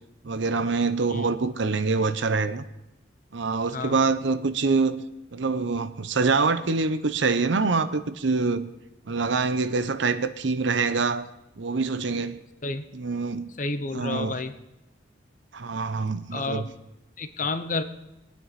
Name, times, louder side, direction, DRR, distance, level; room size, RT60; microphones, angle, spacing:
voice 1, 0.2-2.6 3.3-5.0 5.3-8.7 9.1-11.3 11.6-12.4 12.9-13.5 13.9-14.4 15.5-16.7, right 4 dB, 70° right, 0.7 m, -25 dB
voice 2, 13.6-14.5 16.3-16.7 17.2-17.8, left 3 dB, 40° left, 0.8 m, -30 dB
21.5 x 9.4 x 4.1 m
head